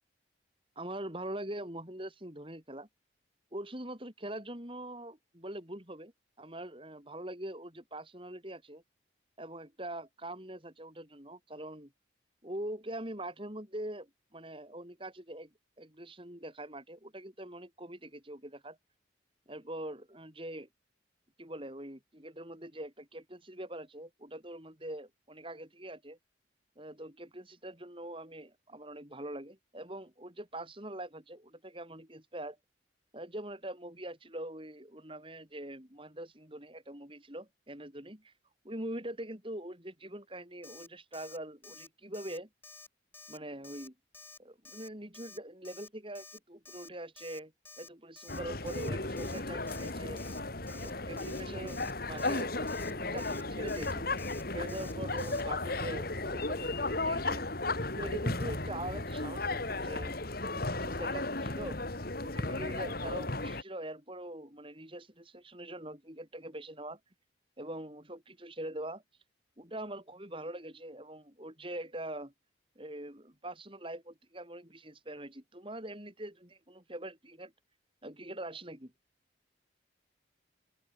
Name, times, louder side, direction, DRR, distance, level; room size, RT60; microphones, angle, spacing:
voice 1, 0.8-2.9 3.5-6.1 6.4-8.8 9.4-11.9 12.4-15.5 15.8-18.8 19.5-20.7 21.4-26.2 26.8-32.6 33.1-38.3 38.6-42.5 43.3-43.9 44.4-47.5 47.8-50.2 50.8-54.1 54.5-57.5 58.0-60.1 60.5-61.8 62.2-67.0 67.6-69.0 69.6-72.3 72.8-77.5 78.0-78.9, right 1 dB, 25° right, 4.6 m, -43 dB
Alarm, 40.6-40.9 41.1-41.4 41.6-41.9 42.1-42.4 42.6-42.9 43.1-43.4 43.6-43.9 44.1-44.4 44.7-44.9 45.1-45.4 45.6-45.9 46.2-46.4 46.7-46.9 47.2-47.4 47.7-47.9 48.2-48.4 48.7-48.9 49.2-49.4 49.7-49.9 50.2-50.4 50.7-50.9 51.2-51.4 51.7-51.9 52.2-52.4 52.7-52.9 53.2-53.4 53.7-53.9 54.2-54.4 54.7-54.9 55.2-55.4, left 3 dB, 10° left, 7.5 m, -51 dB
sound 1, 48.3-63.6, left 2 dB, 50° left, 2.5 m, -35 dB
open air
head